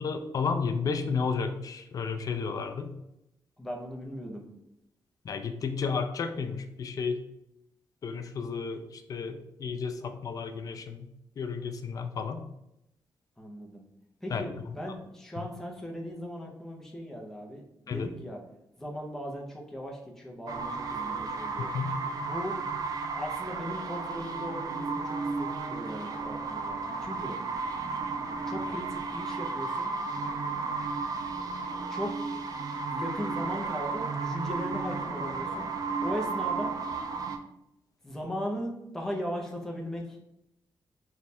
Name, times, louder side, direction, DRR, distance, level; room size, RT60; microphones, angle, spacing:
voice 1, 0.0-2.9 5.2-7.2 8.0-11.1 11.4-12.4 14.3-14.4 17.9-18.1 21.6-21.9, left 5 dB, 45° left, 7 dB, 0.3 m, -32 dB
voice 2, 3.6-4.5 13.4-13.8 14.2-18.4 18.8-21.7 22.2-22.6 23.2-27.4 28.4-29.9 31.9-32.1 32.9-35.7 36.0-36.7 38.0-40.2, equal, 5° left, -1 dB, 0.6 m, -38 dB
sound 1, 20.5-37.4, right 4 dB, 50° right, 0.4 m, -33 dB
3.2 x 2.3 x 4.1 m, 0.85 s
wide cardioid pair, 150°, 8 cm